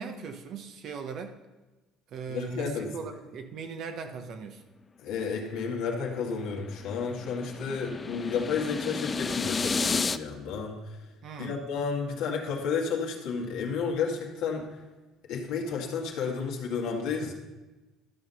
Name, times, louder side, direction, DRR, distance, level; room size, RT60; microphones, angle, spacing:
voice 1, 0.0-1.3 2.1-4.6 11.2-11.6, right 5 dB, 55° right, 6 dB, 1.1 m, -39 dB
voice 2, 2.3-2.9 5.0-10.8 11.4-14.7 15.3-17.3, left 5 dB, 75° left, -1 dB, 1.9 m, -31 dB
sound 1, 5.9-10.2, left 4 dB, 25° left, 0.4 m, -32 dB
12.5 x 6.0 x 5.6 m, 1.1 s
cardioid pair, 110°, 0 cm